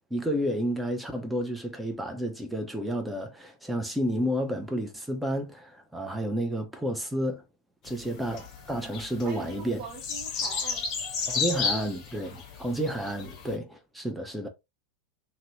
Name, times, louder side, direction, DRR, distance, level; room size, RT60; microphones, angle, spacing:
voice 1, 0.0-7.4 7.8-9.8 11.3-14.5, equal, 5° right, 0.7 m, -31 dB
sound 1, 7.9-13.5, left 5 dB, 35° left, 0.8 m, -33 dB
voice 2, 8.0-8.3 9.2-10.9 11.3-11.7 13.1-13.2, right 5 dB, 40° right, 0.8 m, -42 dB
2.8 x 2.7 x 2.9 m
figure-of-eight pair, 90°, 0 cm